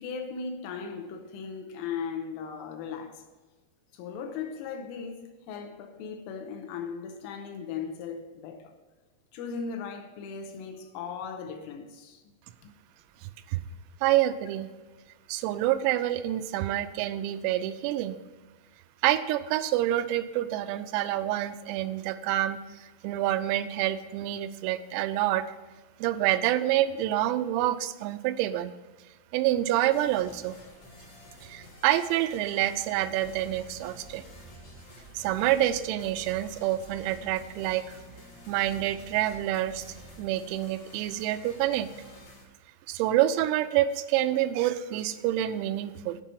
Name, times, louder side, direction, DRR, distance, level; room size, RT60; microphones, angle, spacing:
voice 1, 0.0-3.2 3.9-8.8 9.3-12.2 12.6-12.7, left 6 dB, 85° left, 3.1 m, -37 dB
voice 2, 13.2-13.6 14.0-14.7 15.3-18.2 19.0-25.5 26.0-28.7 29.3-30.6 31.4-34.2 35.1-38.0 38.5-39.9 40.2-41.9 42.9-46.2, right 13 dB, 90° right, 3.3 m, -27 dB
sound 1, 29.9-42.5, left 1 dB, 55° left, 1.6 m, -51 dB
sound 2, 33.2-40.2, right 2 dB, 70° right, 0.7 m, -51 dB
8.9 x 5.3 x 7.5 m
omnidirectional pair, 6.0 m